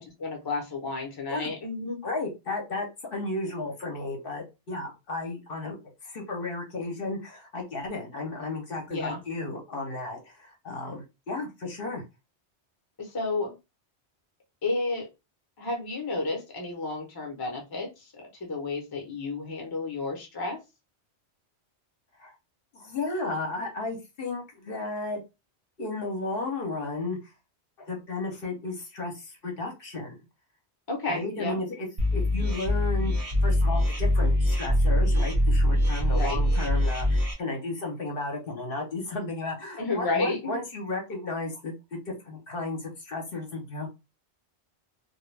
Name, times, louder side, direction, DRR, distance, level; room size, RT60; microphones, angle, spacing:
voice 1, 0.2-2.0 8.9-9.2 13.0-13.5 14.6-15.1 15.6-20.6 30.9-31.6 36.1-36.4 39.8-40.6, left 3 dB, 25° left, 1 dB, 0.6 m, -31 dB
voice 2, 2.0-5.8 6.0-12.0 22.2-22.3 22.7-25.2 25.8-27.2 27.8-30.2 31.1-33.1 33.4-43.9, left 2 dB, 60° left, 1 dB, 0.9 m, -34 dB
sound 1, 32.0-37.3, left 1 dB, 35° right, 0.7 m, -23 dB
2.2 x 2.2 x 3.2 m, 0.25 s
omnidirectional pair, 1.2 m